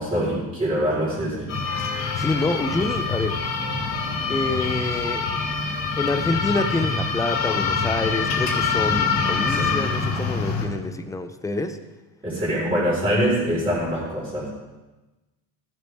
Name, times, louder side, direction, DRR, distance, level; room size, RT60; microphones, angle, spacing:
voice 1, 0.0-1.5 9.5-9.8 12.2-14.5, equal, 15° right, -9 dB, 4.3 m, -24 dB
sound 1, 1.5-10.7, left 4 dB, 65° left, 2.8 m, -25 dB
voice 2, 2.2-3.4 4.3-5.3 6.0-11.8, left 2 dB, 10° left, 9 dB, 0.3 m, -27 dB
16.0 x 7.8 x 3.4 m, 1.1 s
cardioid pair, 165°, 36 cm